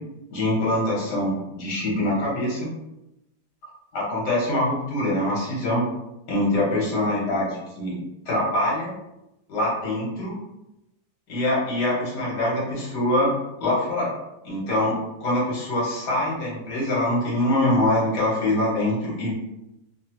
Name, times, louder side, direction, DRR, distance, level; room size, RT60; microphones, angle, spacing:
voice 1, 0.3-2.7 3.9-5.8 6.3-7.5 7.8-7.9 8.3-8.9 9.5-10.3 11.3-13.3 13.6-14.1 14.4-19.3, left 1 dB, 80° left, -5 dB, 1.8 m, -24 dB
3.6 x 2.0 x 2.9 m, 0.89 s
omnidirectional pair, 1.8 m